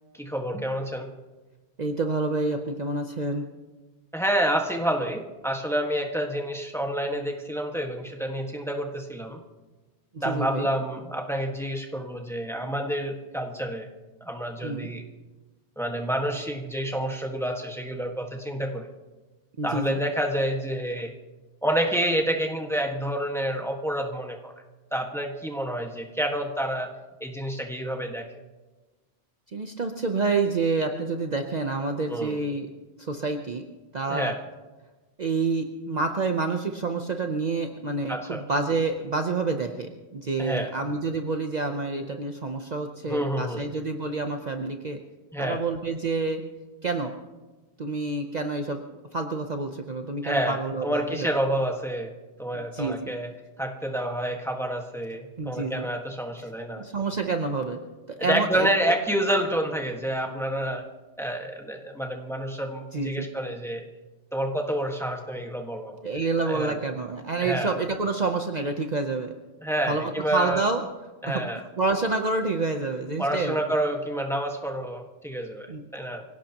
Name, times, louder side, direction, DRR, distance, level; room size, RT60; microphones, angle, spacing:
voice 1, 0.1-1.1 4.1-9.4 10.2-13.9 14.2-15.0 15.8-18.9 19.6-21.1 21.6-24.5 24.9-26.9 27.2-28.3 32.1-32.4 34.1-34.4 38.1-38.4 40.4-40.7 43.1-43.6 45.3-45.6 50.2-52.1 52.4-53.3 53.6-56.8 58.2-60.8 61.2-63.8 64.3-66.0 66.4-66.7 67.4-67.7 69.6-70.6 71.2-71.6 73.2-75.7 75.9-76.2, right 1 dB, ahead, 2 dB, 1.6 m, -28 dB
voice 2, 1.8-3.5 10.1-10.7 14.6-14.9 19.6-20.0 29.5-32.7 33.0-33.7 33.9-34.3 35.2-45.0 45.4-46.4 46.8-47.1 47.8-48.8 49.1-51.3 52.5-53.1 55.4-55.9 56.8-57.8 58.1-58.9 62.9-63.3 66.0-69.3 69.9-70.8 71.2-71.4 71.8-73.6 75.7-75.8, right 3 dB, 45° right, 5 dB, 0.9 m, -28 dB
25.0 x 17.0 x 3.0 m, 1.2 s
omnidirectional pair, 1.1 m